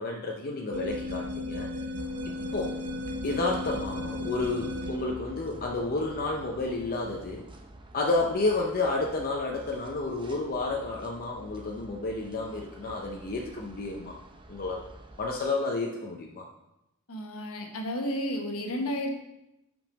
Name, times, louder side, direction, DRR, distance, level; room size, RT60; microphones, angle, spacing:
voice 1, 0.0-1.7 2.2-2.8 3.2-7.5 7.9-14.2 14.5-14.9 15.2-16.5, left 3 dB, 40° left, 0 dB, 0.6 m, -31 dB
sound 1, 0.7-5.2, left 1 dB, 80° right, 0.6 m, -35 dB
sound 2, 2.0-15.5, right 1 dB, 20° right, 0.7 m, -48 dB
voice 2, 17.1-19.1, equal, 70° left, 2 dB, 1.2 m, -32 dB
5.6 x 5.3 x 5.1 m, 0.90 s
head